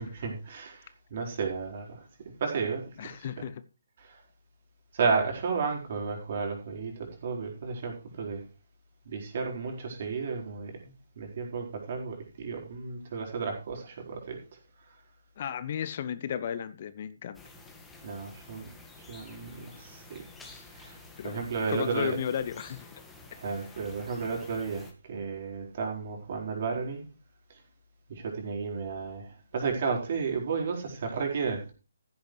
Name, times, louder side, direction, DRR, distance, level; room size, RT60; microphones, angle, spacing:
voice 1, 0.0-3.3 4.0-4.2 4.9-8.4 9.0-14.6 14.9-15.0 18.0-18.7 19.1-20.2 20.7-21.0 21.2-22.2 23.3-27.1 27.5-27.6 28.1-31.7, right 5 dB, 40° right, 4.5 m, -33 dB
voice 2, 3.0-3.6 15.4-17.4 21.2-23.0, left 8 dB, 40° left, 0.7 m, -34 dB
sound 1, 17.3-24.9, left 3 dB, 5° left, 1.9 m, -50 dB
15.0 x 10.0 x 3.2 m
figure-of-eight pair, 140°, 0 cm